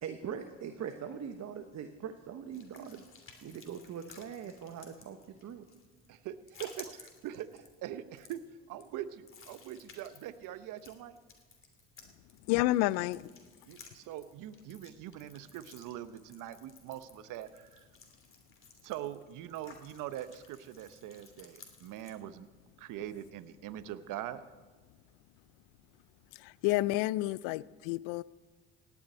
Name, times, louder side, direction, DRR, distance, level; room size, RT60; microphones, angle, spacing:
voice 1, 0.0-3.1 3.4-5.6, right 7 dB, 55° right, 1.1 m, -42 dB
sound 1, 2.5-22.1, left 4 dB, 40° left, 3.0 m, -56 dB
voice 2, 6.1-8.4 8.7-11.2 13.7-17.9 18.8-22.5 22.8-24.4, right 12 dB, 70° right, 0.9 m, -43 dB
voice 3, 12.5-13.3 26.4-28.2, left 17 dB, 80° left, 0.5 m, -30 dB
17.5 x 7.2 x 9.1 m
hypercardioid pair, 60°, 32 cm